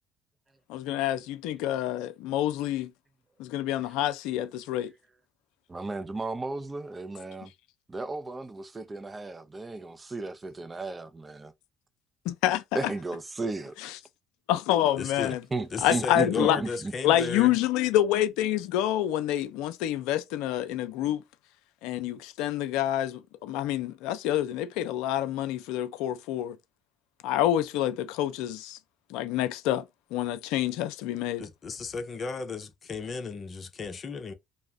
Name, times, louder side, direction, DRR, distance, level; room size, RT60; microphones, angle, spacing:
voice 1, 0.7-2.9 3.4-4.9 12.3-12.6 14.5-15.4 15.8-16.6 17.0-21.2 21.8-26.6 27.2-28.8 29.1-29.9 30.1-31.5, left 12 dB, 75° left, 0.4 m, -27 dB
voice 2, 5.7-7.5 7.9-11.5 12.7-13.8 15.5-16.9 17.2-17.3, right 3 dB, 25° right, 0.5 m, -34 dB
voice 3, 15.0-15.3 15.7-17.6 31.4-34.3, left 4 dB, 45° left, 0.7 m, -35 dB
2.5 x 2.0 x 3.4 m
hypercardioid pair, 65°, 0 cm